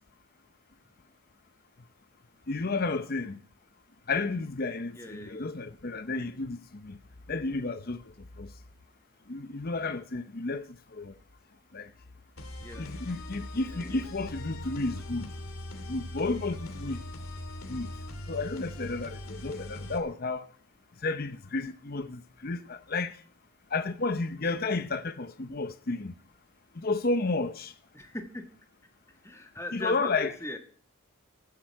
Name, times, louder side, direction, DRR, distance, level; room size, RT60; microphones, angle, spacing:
voice 1, 2.5-3.4 4.1-7.0 7.3-8.5 9.3-11.1 11.7-11.9 12.8-15.3 15.9-17.0 17.7-17.9 18.3-20.5 21.0-23.2 23.7-26.1 26.7-27.7 29.7-30.3, left 3 dB, 45° left, 0.7 m, -32 dB
voice 2, 4.9-5.5 12.6-12.8 13.6-14.0 17.9-18.0 27.9-28.4 29.2-30.6, left 1 dB, 10° left, 1.5 m, -40 dB
sound 1, 12.4-20.0, left 1 dB, 70° left, 2.5 m, -40 dB
15.5 x 14.5 x 4.7 m
head